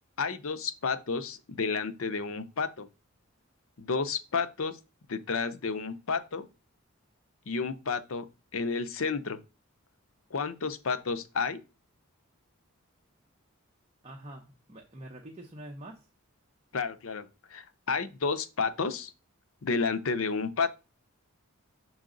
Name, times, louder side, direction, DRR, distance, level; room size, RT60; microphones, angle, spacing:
voice 1, 0.2-2.9 3.8-4.8 5.1-6.5 7.5-8.3 8.5-9.4 10.3-11.6 16.7-19.1 19.6-20.7, left 4 dB, 65° left, 0.6 m, -31 dB
voice 2, 14.0-16.1, right 1 dB, 30° right, 0.8 m, -45 dB
6.2 x 4.5 x 3.8 m
head